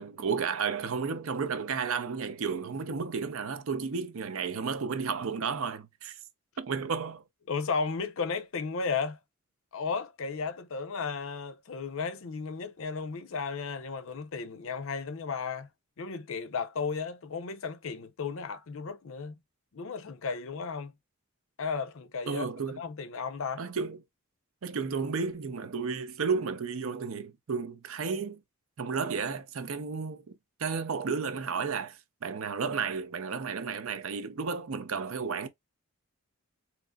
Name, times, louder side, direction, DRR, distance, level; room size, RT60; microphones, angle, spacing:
voice 1, 0.0-6.2 6.6-7.2 22.3-22.8 23.6-24.0 24.6-28.4 28.8-30.2 30.6-35.5, right 5 dB, 70° right, 0.5 m, -32 dB
voice 2, 7.5-9.2 9.7-15.7 16.0-19.4 19.7-20.9 21.6-22.5 22.8-23.6, left 5 dB, 65° left, 0.5 m, -34 dB
3.8 x 2.9 x 2.2 m
head